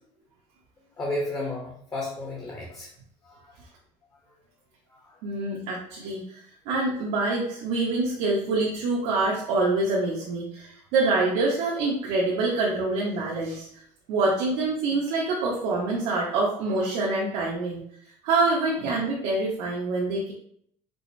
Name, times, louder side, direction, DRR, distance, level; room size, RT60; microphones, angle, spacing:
voice 1, 1.0-2.9 3.2-3.5 5.0-5.2, left 1 dB, 25° left, -3 dB, 0.7 m, -33 dB
voice 2, 5.2-6.2 6.7-13.7 14.1-17.8 18.2-20.3, right 3 dB, 85° right, -3 dB, 0.7 m, -25 dB
4.7 x 2.0 x 2.5 m, 0.66 s
cardioid pair, 155°, 13 cm